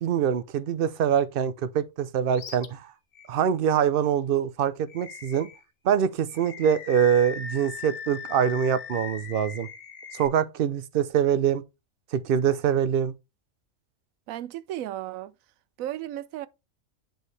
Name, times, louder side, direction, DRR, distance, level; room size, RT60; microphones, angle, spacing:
voice 1, 0.0-2.9 3.3-5.5 5.8-9.7 10.1-11.6 12.1-13.1, right 8 dB, 60° right, 0.6 m, -24 dB
Animal, 2.3-2.7 3.1-3.3 4.9-5.6 6.3-10.3, left 7 dB, 75° left, 1.4 m, -39 dB
voice 2, 14.3-15.3 15.8-16.5, right 13 dB, 80° right, 1.0 m, -34 dB
9.0 x 4.7 x 3.2 m
omnidirectional pair, 1.4 m